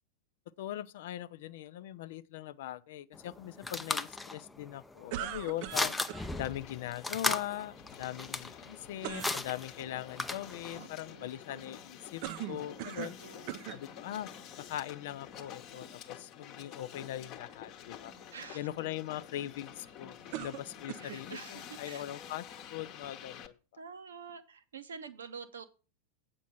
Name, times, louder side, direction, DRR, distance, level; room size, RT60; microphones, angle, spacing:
voice 1, 0.6-5.9 6.3-12.2 12.5-13.2 13.7-14.3 14.6-18.1 18.5-23.6, left 13 dB, 55° left, 0.5 m, -41 dB
sound 1, 3.1-10.8, left 2 dB, 10° left, 0.6 m, -37 dB
sound 2, 5.1-6.3 9.0-9.4 12.2-13.2 13.5-13.8 14.6-14.7 20.3-21.2, right 13 dB, 45° right, 0.5 m, -40 dB
Hiss, 5.6-23.5, left 9 dB, 35° left, 1.0 m, -50 dB
voice 2, 10.7-11.4 12.9-13.6 18.3-18.7 20.3-20.4 21.0-22.0 23.8-25.7, right 6 dB, 65° right, 1.0 m, -48 dB
8.3 x 5.2 x 7.0 m
figure-of-eight pair, 90°, 0 cm